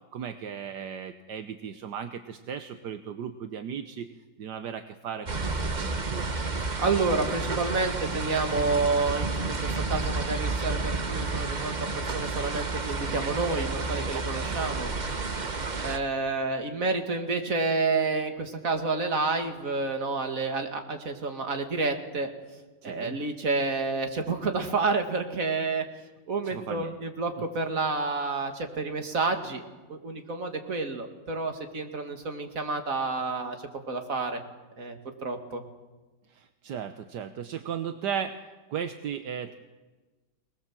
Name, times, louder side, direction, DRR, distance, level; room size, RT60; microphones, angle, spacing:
voice 1, 0.1-4.1 4.4-6.2 14.1-14.6 14.9-15.0 22.8-23.2 26.4-26.9 36.3-38.4 38.7-39.5, right 8 dB, 75° right, 8 dB, 1.5 m, -36 dB
sound 1, 5.3-16.0, right 3 dB, 30° right, 1.2 m, -31 dB
voice 2, 6.8-14.9 15.8-22.3 22.8-25.8 26.3-29.6 29.9-34.4 34.8-35.6, right 3 dB, 50° right, 5 dB, 2.5 m, -29 dB
24.0 x 20.5 x 7.5 m, 1.2 s
omnidirectional pair, 1.8 m